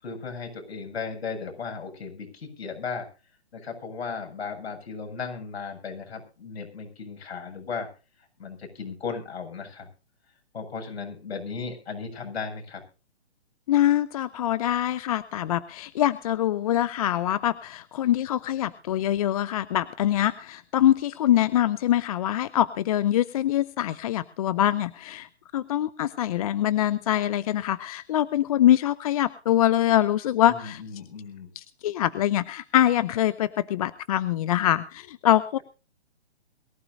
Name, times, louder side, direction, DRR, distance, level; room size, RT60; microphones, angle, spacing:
voice 1, 0.0-3.1 3.5-7.9 8.4-9.9 10.5-12.8 30.5-31.5, left 5 dB, 65° left, 4 dB, 7.7 m, -36 dB
voice 2, 13.7-30.8 31.6-35.6, left 12 dB, 35° left, 17 dB, 0.7 m, -24 dB
22.5 x 15.0 x 2.7 m, 0.34 s
hypercardioid pair, 140°, 33 cm